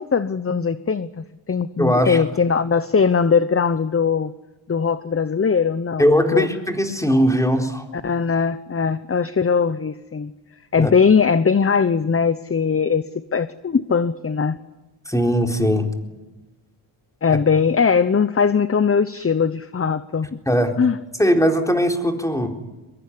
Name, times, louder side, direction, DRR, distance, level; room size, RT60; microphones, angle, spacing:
voice 1, 0.0-4.3 4.7-6.5 8.0-10.3 10.7-13.0 13.3-14.6 17.2-20.4 20.8-21.0, left 6 dB, 30° left, 13 dB, 0.9 m, -20 dB
voice 2, 1.8-2.2 6.0-7.9 10.8-10.9 15.1-15.9 17.3-17.4 20.5-20.7 21.2-22.5, equal, 5° left, 3 dB, 4.0 m, -19 dB
22.5 x 22.5 x 9.9 m, 1.1 s
cardioid pair, 80°, 49 cm